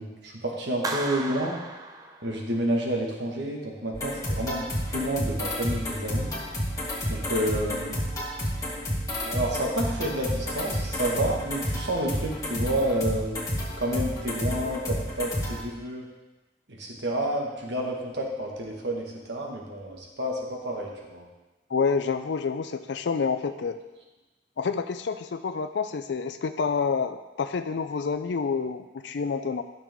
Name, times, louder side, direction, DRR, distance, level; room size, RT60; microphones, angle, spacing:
voice 1, 0.0-1.6 2.2-6.3 7.1-8.0 9.2-13.5 13.8-16.1 16.7-21.3, right 1 dB, 70° right, -1 dB, 1.7 m, -30 dB
Clapping, 0.8-2.7, right 3 dB, 20° right, 0.7 m, -35 dB
sound 1, 3.9-15.6, equal, 20° left, 2.4 m, -31 dB
voice 2, 21.7-23.8 24.6-29.6, left 5 dB, 70° left, 9 dB, 0.4 m, -28 dB
12.0 x 6.7 x 3.6 m, 1.1 s
head